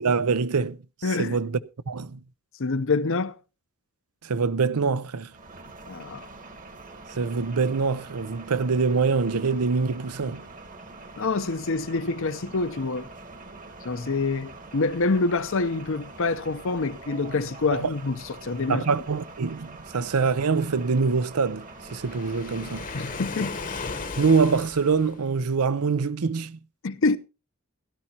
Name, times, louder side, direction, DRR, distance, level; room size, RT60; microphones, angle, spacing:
voice 1, 0.0-0.8 1.2-1.6 1.9-2.2 4.2-5.3 7.1-10.4 17.7-17.9 18.7-21.6 21.9-22.9 24.2-26.6, right 5 dB, 85° right, 0.6 m, -24 dB
voice 2, 1.0-1.4 2.6-3.4 5.9-6.3 11.2-13.1 13.8-18.8 22.9-23.6 26.8-27.2, left 3 dB, 60° left, 0.7 m, -26 dB
sound 1, 5.3-24.1, right 3 dB, 35° right, 1.3 m, -44 dB
Waves surf, 21.8-25.3, left 4 dB, 35° left, 1.0 m, -36 dB
16.5 x 12.5 x 2.9 m
head